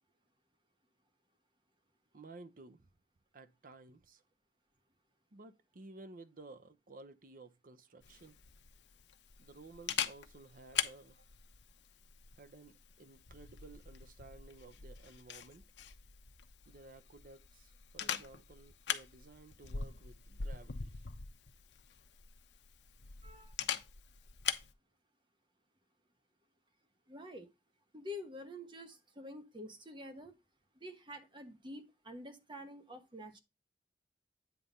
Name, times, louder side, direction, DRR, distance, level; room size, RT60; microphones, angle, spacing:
voice 1, 2.1-2.9 3.3-4.2 5.3-8.4 9.4-11.3 12.3-15.6 16.7-21.0, right 2 dB, 50° right, 0.7 m, -55 dB
Camera, 8.0-24.7, left 8 dB, 75° left, 0.9 m, -43 dB
voice 2, 23.2-23.5 27.1-27.5 27.9-30.3 30.8-33.4, left 1 dB, 25° right, 1.2 m, -48 dB
9.2 x 3.4 x 5.3 m
head